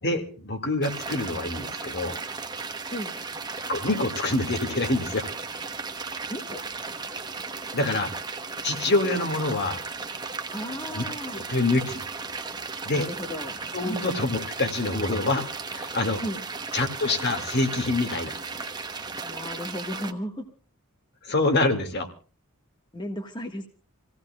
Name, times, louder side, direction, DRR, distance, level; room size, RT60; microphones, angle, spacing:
voice 1, 0.0-2.2 3.7-5.3 7.7-8.1 8.6-9.8 10.9-11.0 11.3-12.0 12.8-13.1 13.7-16.2 16.7-18.3 21.2-22.1, left 2 dB, 50° left, 6 dB, 2.2 m, -26 dB
sound 1, 0.8-20.1, right 4 dB, 20° right, 1.1 m, -35 dB
voice 2, 6.3-6.6 10.5-11.4 12.9-14.1 16.2-16.4 19.2-20.4 22.9-23.7, equal, 20° left, 4 dB, 1.5 m, -35 dB
28.0 x 16.0 x 2.3 m, 0.36 s
head